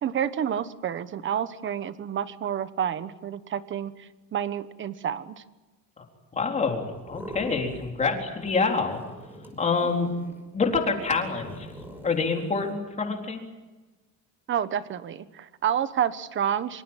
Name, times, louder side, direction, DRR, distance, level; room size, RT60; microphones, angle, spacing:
voice 1, 0.0-5.4 14.5-16.8, right 9 dB, 35° right, 13 dB, 1.2 m, -29 dB
voice 2, 6.3-9.0 9.6-10.1 10.5-11.7 12.0-13.4, left 4 dB, 20° left, 2 dB, 4.1 m, -26 dB
sound 1, 6.9-8.2 8.4-12.8, right 1 dB, 5° right, 5.7 m, -44 dB
25.5 x 25.5 x 7.5 m, 1.2 s
cardioid pair, 170°, 33 cm